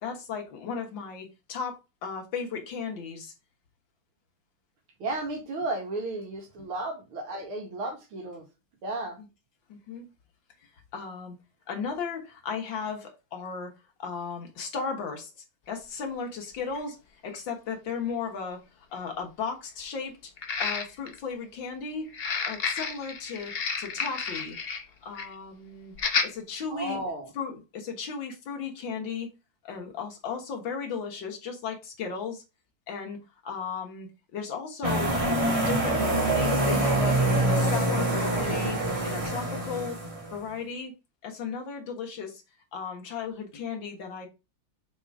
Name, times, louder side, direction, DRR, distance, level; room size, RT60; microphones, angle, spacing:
voice 1, 0.0-3.3 9.2-9.3 9.7-10.1 10.9-11.3 11.7-13.7 14.0-15.3 15.7-17.0 17.2-18.6 18.9-20.3 20.6-22.1 22.5-24.6 25.0-25.9 26.2-27.0 27.4-29.3 29.6-32.4 32.9-33.2 33.4-35.1 35.4-37.2 37.5-38.8 39.0-40.0 40.3-40.9 41.2-42.4 42.7-44.3, left 6 dB, 65° left, 2.2 m, -35 dB
voice 2, 5.0-8.4 8.8-9.2 26.7-27.3, right 2 dB, 85° right, 2.4 m, -33 dB
sound 1, 15.7-15.8 16.7-16.8 17.3-17.4 20.4-21.2 22.1-24.8 25.1-25.3 25.9-26.3 26.8-27.0, left 5 dB, 85° left, 0.5 m, -31 dB
sound 2, 34.8-40.3, right 1 dB, 15° right, 1.6 m, -25 dB
5.4 x 3.9 x 4.7 m
omnidirectional pair, 2.3 m